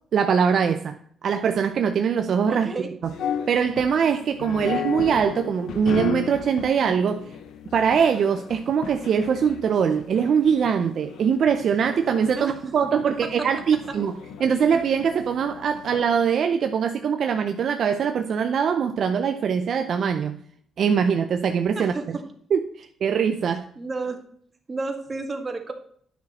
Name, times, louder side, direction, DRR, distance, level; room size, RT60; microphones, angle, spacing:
voice 1, 0.1-2.7 3.5-7.3 7.7-14.1 14.4-20.4 20.8-21.9 22.5-23.6, right 7 dB, 60° right, 0.6 m, -22 dB
voice 2, 2.5-2.9 12.4-12.5 13.2-13.5 21.8-22.2 23.8-24.2 24.7-25.7, right 3 dB, 30° right, 1.8 m, -31 dB
sound 1, 3.0-16.3, left 7 dB, 75° left, 0.8 m, -36 dB
9.3 x 6.4 x 4.2 m
cardioid pair, 90°, 0 cm